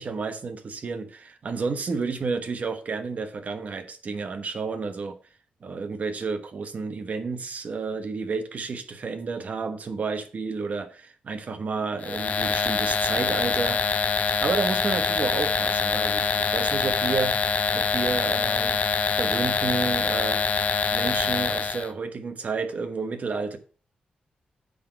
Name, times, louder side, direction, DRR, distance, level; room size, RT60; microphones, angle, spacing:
voice 1, 0.0-5.2 5.6-14.0 14.4-17.4 17.7-18.8 19.1-20.4 20.9-23.6, right 4 dB, 55° right, 1.2 m, -31 dB
sound 1, 12.0-21.9, left 5 dB, 55° left, 0.7 m, -25 dB
8.6 x 4.0 x 5.9 m
cardioid pair, 80°, 3 cm